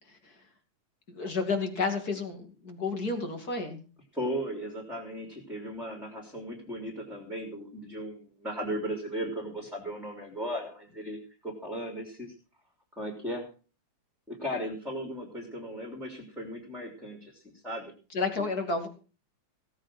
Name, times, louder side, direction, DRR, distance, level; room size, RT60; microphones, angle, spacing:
voice 1, 1.1-3.8 18.1-18.9, left 4 dB, 30° left, 6 dB, 2.9 m, -31 dB
voice 2, 4.1-11.2 11.4-12.3 13.0-13.5 14.3-17.9 18.3-18.5, equal, ahead, 2 dB, 3.2 m, -36 dB
17.0 x 8.9 x 6.2 m, 0.35 s
omnidirectional pair, 3.3 m